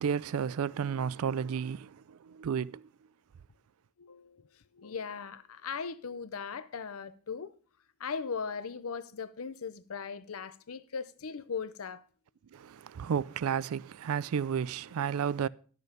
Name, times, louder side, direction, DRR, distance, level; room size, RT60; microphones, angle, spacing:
voice 1, 0.0-2.9 12.5-15.5, right 7 dB, 80° right, 0.4 m, -32 dB
voice 2, 4.0-7.5 8.0-12.0, left 5 dB, 80° left, 0.6 m, -39 dB
12.0 x 6.7 x 5.0 m
head